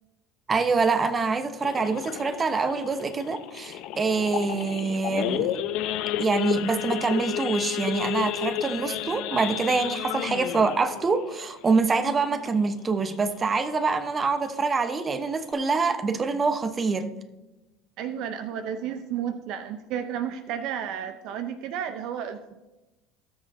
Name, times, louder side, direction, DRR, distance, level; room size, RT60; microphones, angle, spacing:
voice 1, 0.5-5.6 6.2-17.1, right 4 dB, 30° right, 0.9 m, -25 dB
Idling / Accelerating revving vroom / Sawing, 1.6-12.7 13.1-13.3 13.6-13.7 14.1-14.4 14.9-15.0 15.2-15.5, left 12 dB, 65° left, 0.7 m, -32 dB
voice 2, 18.0-22.6, right 9 dB, 65° right, 0.6 m, -32 dB
18.0 x 6.6 x 2.7 m
hypercardioid pair, 85°, 0 cm